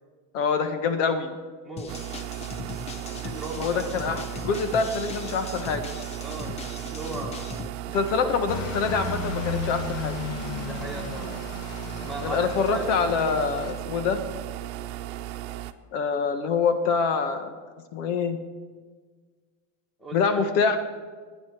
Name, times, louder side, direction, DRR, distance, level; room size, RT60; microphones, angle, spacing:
voice 1, 0.3-1.3 3.6-5.8 7.9-10.1 12.2-14.2 15.9-17.6 17.9-18.4 20.1-20.8, left 5 dB, 75° left, 9 dB, 1.5 m, -25 dB
voice 2, 1.6-2.0 2.9-3.8 4.1-4.2 6.2-8.1 10.6-11.4 12.0-13.2 20.0-20.4, right 2 dB, ahead, 0 dB, 2.0 m, -39 dB
sound 1, 1.8-7.7, left 5 dB, 15° left, 0.5 m, -39 dB
sound 2, 1.9-15.7, right 14 dB, 65° right, 0.9 m, -36 dB
sound 3, 8.5-13.7, left 5 dB, 40° left, 0.9 m, -35 dB
14.0 x 9.9 x 7.4 m, 1.5 s
supercardioid pair, 165°, 38 cm